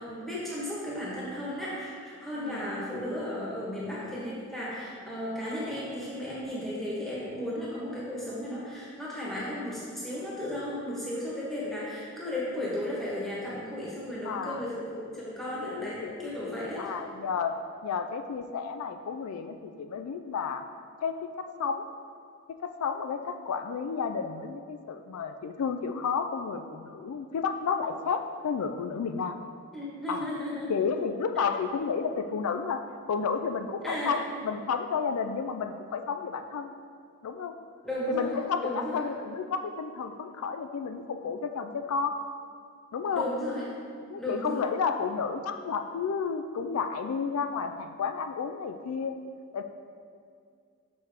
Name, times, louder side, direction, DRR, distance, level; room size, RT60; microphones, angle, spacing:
voice 1, 0.0-16.9 29.7-30.7 33.8-34.2 37.8-39.0 43.1-43.7 44.2-44.7, left 1 dB, ahead, -7 dB, 1.2 m, -34 dB
voice 2, 2.4-2.7 14.2-14.6 15.6-17.5 17.8-20.6 21.0-21.9 22.5-29.4 30.1-30.3 30.7-32.8 33.1-34.2 34.4-36.7 37.2-37.5 38.1-42.1 42.9-43.3 44.1-49.2 49.5-49.6, left 5 dB, 90° left, 8 dB, 0.3 m, -31 dB
5.7 x 5.3 x 3.5 m, 2.2 s
head